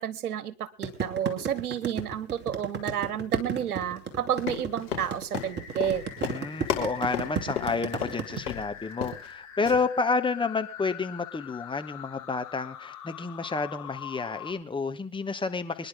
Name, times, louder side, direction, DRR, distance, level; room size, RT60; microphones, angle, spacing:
voice 1, 0.0-6.0, right 9 dB, 75° right, 17 dB, 1.5 m, -31 dB
sound 1, 0.8-8.4, right 6 dB, 25° right, 3.0 m, -33 dB
Run, 4.4-8.2 8.5-8.6 8.9-9.3 9.7-9.8, left 9 dB, 75° left, 5.7 m, -33 dB
sound 2, 5.3-14.5, left 9 dB, 40° left, 7.5 m, -44 dB
voice 2, 6.2-15.9, left 4 dB, 10° left, 7 dB, 1.2 m, -30 dB
25.0 x 11.0 x 3.9 m, 0.33 s
hypercardioid pair, 95°, 45 cm